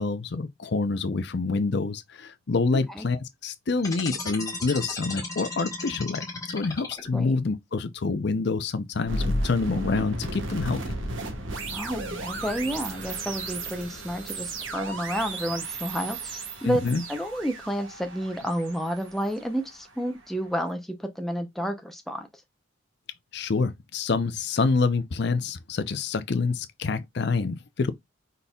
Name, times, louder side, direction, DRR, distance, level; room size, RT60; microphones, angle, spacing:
voice 1, 0.0-10.9 16.6-17.0 23.3-27.9, left 4 dB, 55° left, 0.5 m, -27 dB
sound 1, 3.8-7.3, left 3 dB, 15° left, 1.2 m, -35 dB
sound 2, 9.1-20.1, right 2 dB, 75° right, 1.2 m, -34 dB
voice 2, 11.7-22.3, equal, ahead, 0.6 m, -30 dB
5.2 x 4.1 x 2.3 m
head